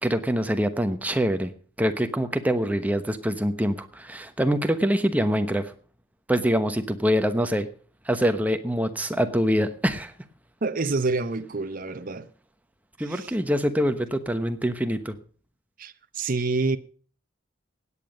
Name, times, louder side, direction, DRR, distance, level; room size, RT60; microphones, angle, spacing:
voice 1, 0.0-1.5 1.8-5.7 6.3-7.7 8.0-10.1 13.0-15.2, equal, 10° right, 1.0 m, -24 dB
voice 2, 10.6-12.3 13.1-13.3 15.8-16.8, right 3 dB, 45° right, 0.7 m, -27 dB
16.5 x 9.3 x 5.2 m
head